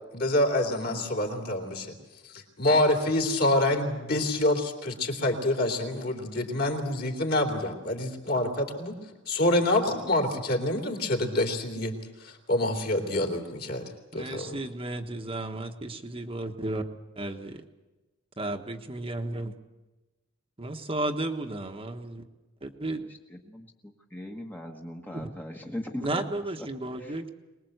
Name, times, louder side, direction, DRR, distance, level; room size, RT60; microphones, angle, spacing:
voice 1, 0.1-1.9 2.3-8.9 9.3-14.6, left 1 dB, 50° left, 3 dB, 3.4 m, -27 dB
voice 2, 14.1-16.8 17.2-17.6 18.4-19.5 20.6-22.2 22.6-23.0 26.0-27.3, right 2 dB, 30° right, 4 dB, 1.3 m, -33 dB
voice 3, 23.1-26.7 27.0-27.3, left 1 dB, 10° left, 1 dB, 1.3 m, -40 dB
24.0 x 20.5 x 8.0 m, 1.1 s
head